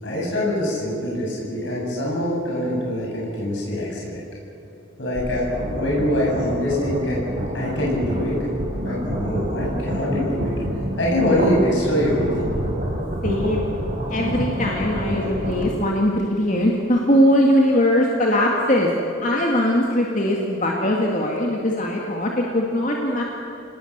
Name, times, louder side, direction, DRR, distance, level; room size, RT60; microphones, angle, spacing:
voice 1, 0.0-4.2 5.0-5.5 5.8-7.2 7.5-8.5 8.8-10.5 11.0-12.5, left 1 dB, 60° left, -4 dB, 7.3 m, -24 dB
sound 1, 5.1-15.6, equal, 40° right, 4.8 m, -28 dB
voice 2, 13.2-13.7 14.1-18.9 19.2-23.2, left 1 dB, 35° left, -1 dB, 2.0 m, -20 dB
27.0 x 19.0 x 7.4 m, 2.9 s
head